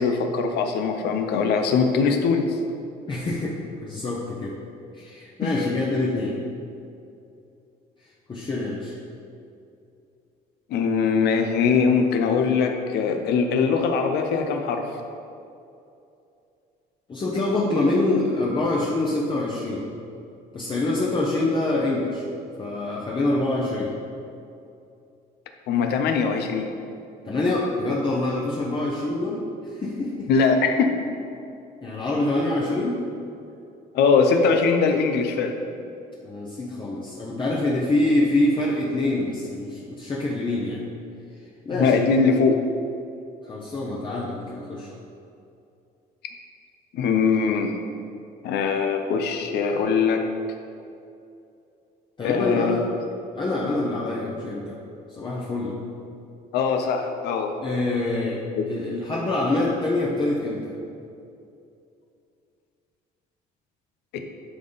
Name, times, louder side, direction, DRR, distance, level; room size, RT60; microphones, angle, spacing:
voice 1, 0.0-2.5 5.4-5.6 10.7-14.8 25.7-26.7 30.3-30.9 33.9-35.5 41.8-42.6 46.9-47.7 48.4-50.2 52.2-52.8 56.5-57.5 58.5-58.7 64.1-64.2, left 5 dB, 80° left, 5 dB, 0.7 m, -21 dB
voice 2, 3.1-4.6 4.9-6.4 8.3-9.0 17.1-19.9 20.5-22.2 22.6-23.9 27.2-30.3 31.8-33.0 36.2-40.8 41.6-42.1 43.5-44.9 52.2-52.8 53.3-54.8 55.2-55.8 57.6-60.7, left 2 dB, 30° left, -5 dB, 1.0 m, -25 dB
11.0 x 3.7 x 4.1 m, 2.6 s
cardioid pair, 110°, 17 cm